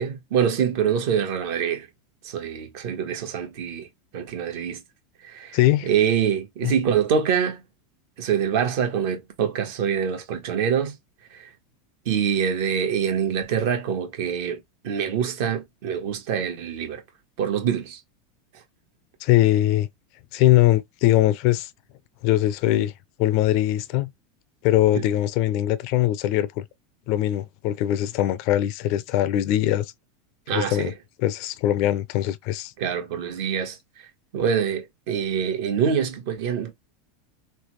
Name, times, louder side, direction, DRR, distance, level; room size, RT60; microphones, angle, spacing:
voice 1, 0.0-1.9 2.2-3.9 4.1-4.8 5.2-7.6 8.2-11.0 11.3-11.5 12.0-17.0 17.4-18.0 24.9-25.0 30.5-30.9 32.8-33.8 34.3-36.7, right 7 dB, 65° right, 1.0 m, -25 dB
voice 2, 5.5-5.9 6.6-6.7 19.2-19.9 20.3-21.7 22.2-22.9 23.2-24.1 24.6-26.6 27.1-29.9 30.5-30.9 31.2-32.7, left 14 dB, 55° left, 0.3 m, -21 dB
3.3 x 2.1 x 3.1 m
supercardioid pair, 115°, 0 cm